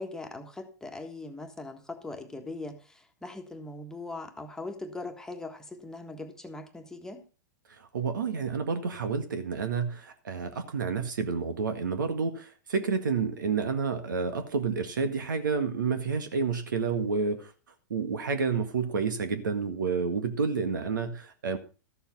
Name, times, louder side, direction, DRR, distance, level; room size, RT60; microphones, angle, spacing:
voice 1, 0.0-7.2, left 2 dB, 5° left, 4 dB, 1.5 m, -40 dB
voice 2, 7.8-17.5 17.9-21.6, right 5 dB, 85° right, 8 dB, 1.8 m, -29 dB
13.0 x 7.1 x 5.3 m, 0.35 s
hypercardioid pair, 120°, 10 cm